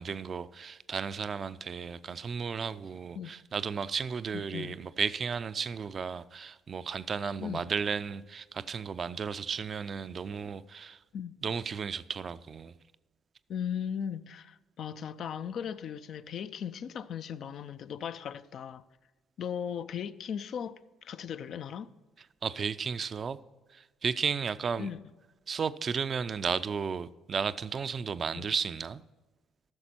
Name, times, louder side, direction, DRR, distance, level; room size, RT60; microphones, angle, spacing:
voice 1, 0.0-11.0 11.4-12.8 22.4-23.4 23.7-24.9 25.5-29.0, right 6 dB, 45° right, 0.4 m, -34 dB
voice 2, 4.3-4.8 7.4-7.7 11.1-11.3 13.5-18.8 19.4-21.9 24.8-25.0 28.3-28.5, left 8 dB, 60° left, 0.4 m, -37 dB
14.0 x 6.6 x 4.4 m
hypercardioid pair, 60°, 0 cm